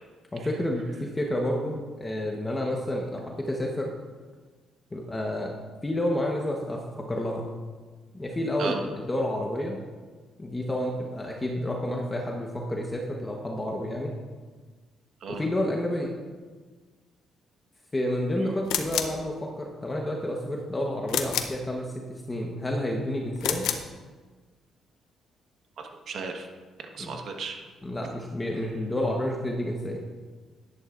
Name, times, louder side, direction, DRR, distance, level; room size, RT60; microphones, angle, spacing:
voice 1, 0.3-3.9 4.9-5.6 5.8-7.5 8.1-9.8 10.4-14.1 15.3-16.1 17.9-23.7 27.0-27.2 27.8-30.1, left 1 dB, 20° left, 0 dB, 1.1 m, -30 dB
sound 1, 18.7-19.2 21.1-21.6 23.4-23.9, left 9 dB, 90° left, 0.7 m, -29 dB
voice 2, 25.8-26.5 26.8-27.6, right 5 dB, 65° right, 3 dB, 1.4 m, -35 dB
11.0 x 11.0 x 2.5 m, 1.4 s
cardioid pair, 90°, 0 cm